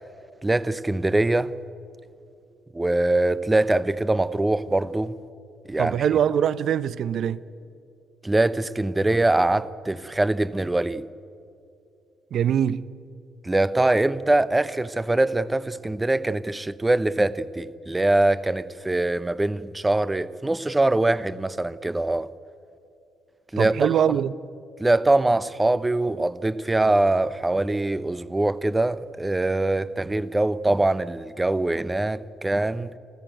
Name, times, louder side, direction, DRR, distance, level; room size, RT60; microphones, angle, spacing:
voice 1, 0.4-1.5 2.7-5.2 5.7-6.1 8.2-11.0 13.4-22.3 23.5-23.9 24.8-32.9, right 2 dB, 15° right, 0.8 m, -23 dB
voice 2, 5.8-7.4 12.3-12.9 23.6-24.3, right 9 dB, 65° right, 0.6 m, -23 dB
28.5 x 14.0 x 9.1 m
cardioid pair, 90°, 0 cm